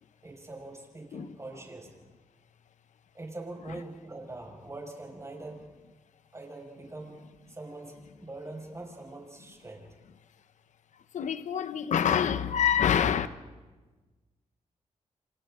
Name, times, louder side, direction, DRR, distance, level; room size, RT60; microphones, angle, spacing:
voice 1, 0.2-2.0 3.1-5.6 6.3-7.2 7.5-9.9, right 2 dB, 25° right, 5.8 m, -43 dB
voice 2, 11.1-13.3, left 8 dB, 80° left, 1.0 m, -26 dB
30.0 x 26.5 x 3.8 m
cardioid pair, 80°, 12 cm